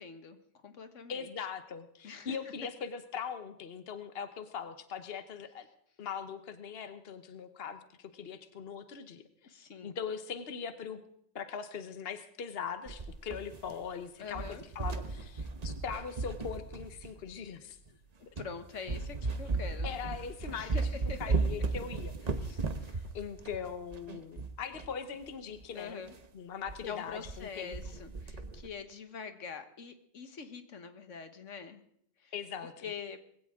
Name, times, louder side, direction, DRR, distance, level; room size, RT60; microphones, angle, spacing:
voice 1, 0.0-1.3 2.0-2.4 9.4-10.0 14.2-14.6 18.4-19.9 20.5-21.3 22.7-23.1 25.7-26.2 26.8-31.8 32.2-32.3 32.6-33.2, left 5 dB, 85° left, 9 dB, 1.6 m, -44 dB
voice 2, 1.1-5.7 6.0-11.0 11.3-14.4 14.7-17.8 19.8-20.8 21.2-22.1 22.4-22.6 23.1-26.0 26.3-27.8 32.3-32.8, left 7 dB, 55° left, 10 dB, 1.2 m, -41 dB
sound 1, 12.9-14.0 14.3-17.3 17.9-18.0 18.4-18.6 18.9-24.9 25.2-25.3 25.6-25.7 26.1-26.3 26.7-26.8 27.1-27.4 27.7-28.7, right 3 dB, 35° right, 1.0 m, -35 dB
20.5 x 16.5 x 3.7 m, 0.69 s
omnidirectional pair, 1.2 m